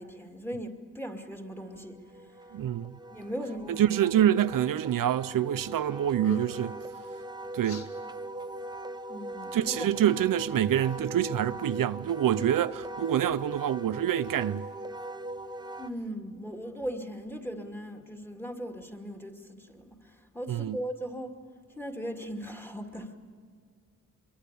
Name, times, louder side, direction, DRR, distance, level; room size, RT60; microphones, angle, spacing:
voice 1, 0.0-2.3 3.1-3.8 9.1-9.9 15.8-21.4 21.7-23.2, equal, 5° left, 2.5 m, -38 dB
Wind instrument woodwind instrument, 1.5-15.9, right 1 dB, 15° right, 0.8 m, -41 dB
voice 2, 2.5-2.9 3.8-6.8 7.5-7.9 9.5-14.6 20.5-20.8, right 11 dB, 90° right, 0.6 m, -26 dB
sound 1, 5.6-5.8 6.1-6.8 7.6-7.9, left 6 dB, 60° left, 2.1 m, -43 dB
25.5 x 23.0 x 6.8 m
wide cardioid pair, 80°, 32 cm